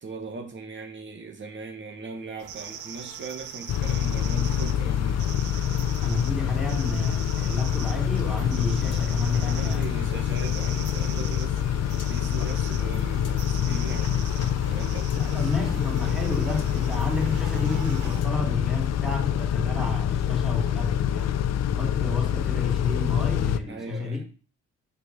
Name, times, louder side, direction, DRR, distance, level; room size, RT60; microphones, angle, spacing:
voice 1, 0.0-5.2 9.3-15.5 23.7-24.2, right 4 dB, 40° right, 1.5 m, -39 dB
sound 1, 2.4-18.2, right 8 dB, 80° right, 1.1 m, -42 dB
Car / Idling / Accelerating revving vroom, 3.7-23.6, left 9 dB, 60° left, 0.6 m, -26 dB
voice 2, 6.0-10.3 15.1-21.4 21.7-24.2, left 3 dB, ahead, 3.1 m, -31 dB
sound 2, 8.9-10.0 10.9-11.0 12.0-12.2 13.2-13.4 15.1-15.2 16.6-16.7 18.2-18.4, left 8 dB, 90° left, 1.3 m, -51 dB
6.3 x 4.8 x 6.8 m
cardioid pair, 90°, 30 cm